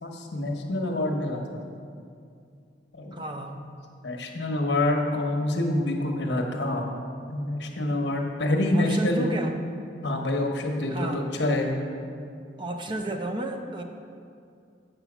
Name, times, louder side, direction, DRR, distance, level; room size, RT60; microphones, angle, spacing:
voice 1, 0.0-1.6 2.9-3.6 4.0-7.0 7.3-9.2 10.0-11.8, left 1 dB, 70° left, 2 dB, 1.0 m, -27 dB
voice 2, 3.1-3.6 8.7-9.5 10.9-11.3 12.6-13.8, right 1 dB, 25° right, 4 dB, 0.6 m, -32 dB
8.0 x 5.6 x 6.0 m, 2.4 s
head